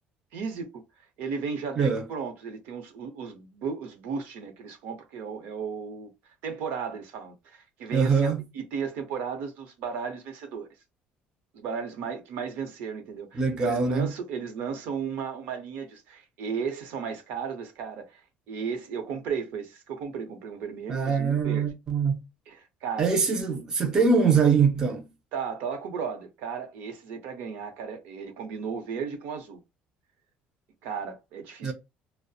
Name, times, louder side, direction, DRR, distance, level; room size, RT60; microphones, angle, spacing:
voice 1, 0.3-0.8 1.2-6.1 6.4-10.7 11.5-18.2 18.5-21.7 22.5-23.1 25.3-29.6 30.8-31.7, right 6 dB, 70° right, 0.7 m, -35 dB
voice 2, 7.9-8.4 13.3-14.1 20.9-22.2 23.0-25.0 31.6-31.7, right 5 dB, 20° right, 0.4 m, -23 dB
2.6 x 2.0 x 2.3 m
cardioid pair, 170°, 4 cm